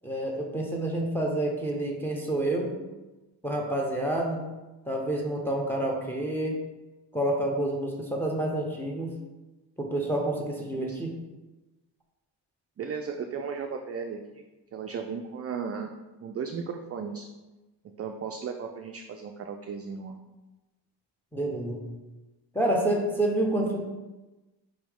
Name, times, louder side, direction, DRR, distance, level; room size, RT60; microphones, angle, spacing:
voice 1, 0.0-2.8 3.4-4.4 4.9-6.6 7.1-9.1 9.8-11.1 21.3-21.9 22.5-23.8, right 1 dB, 5° left, 1 dB, 0.8 m, -28 dB
voice 2, 12.8-14.4 14.7-15.9 16.2-17.3 18.0-20.2, right 6 dB, 35° right, 4 dB, 0.4 m, -35 dB
4.9 x 3.0 x 3.5 m, 1.1 s
cardioid pair, 70°, 46 cm